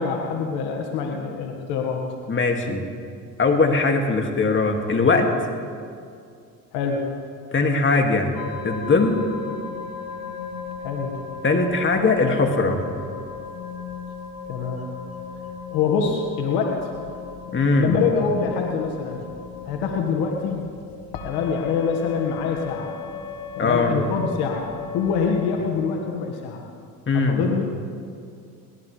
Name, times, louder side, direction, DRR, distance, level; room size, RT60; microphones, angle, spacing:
voice 1, 0.0-2.0 6.7-7.1 10.8-11.2 14.5-14.9 15.7-16.9 17.8-19.3 19.7-20.7 21.2-22.9 23.6-24.7 24.9-26.6 27.1-27.7, left 5 dB, 80° left, 1 dB, 1.8 m, -25 dB
voice 2, 2.3-2.9 3.4-5.3 7.5-8.3 8.6-9.2 11.4-12.8 17.5-18.0 23.6-24.0 27.1-27.4, left 3 dB, 30° left, 3 dB, 2.3 m, -20 dB
sound 1, 8.3-25.6, left 6 dB, 65° left, 1.8 m, -36 dB
23.0 x 18.0 x 3.4 m, 2.3 s
supercardioid pair, 80°, 39 cm